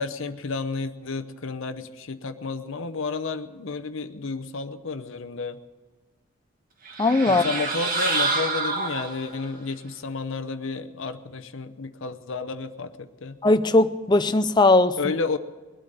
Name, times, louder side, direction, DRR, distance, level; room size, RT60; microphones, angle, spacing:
voice 1, 0.0-5.6 7.3-13.4 15.0-15.4, left 4 dB, 60° left, 9 dB, 0.7 m, -31 dB
sound 1, 6.9-9.5, right 3 dB, 40° right, 1.5 m, -27 dB
voice 2, 7.0-7.4 13.4-15.0, left 2 dB, 20° left, 10 dB, 0.4 m, -19 dB
20.5 x 8.8 x 6.6 m, 1.3 s
head